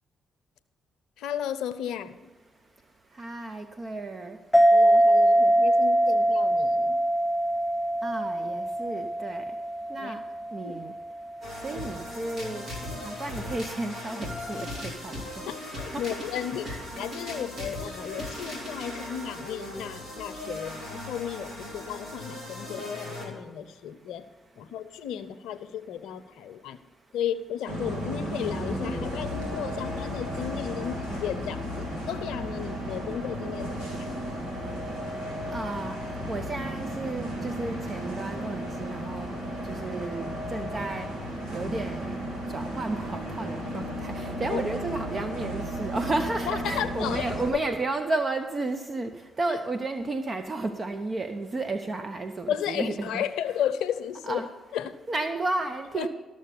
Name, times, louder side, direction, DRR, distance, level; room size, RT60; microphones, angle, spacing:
voice 1, 1.2-2.3 4.7-7.0 10.0-10.2 10.6-10.7 15.4-24.3 24.6-26.8 27.1-34.1 44.5-44.6 46.5-47.6 49.5-49.6 52.5-54.4 54.7-55.0 56.0-56.1, left 9 dB, 80° left, 13 dB, 0.6 m, -34 dB
voice 2, 3.2-4.4 8.0-9.4 9.9-10.2 10.5-10.9 11.6-12.6 13.0-14.7 15.0-15.1 15.9-16.0 16.7-16.8 35.5-36.0 36.3-39.3 39.7-41.1 41.5-42.1 42.5-49.1 49.4-53.2 54.3-54.5 55.1-56.1, right 2 dB, 40° right, 8 dB, 0.9 m, -32 dB
sound 1, 4.5-11.6, right 1 dB, 10° left, 0.4 m, -23 dB
sound 2, 11.4-23.4, left 1 dB, 60° right, 3.4 m, -38 dB
Bus, 27.7-47.5, equal, 80° right, 2.6 m, -34 dB
13.5 x 6.5 x 6.9 m, 1.3 s
hypercardioid pair, 45°, 0 cm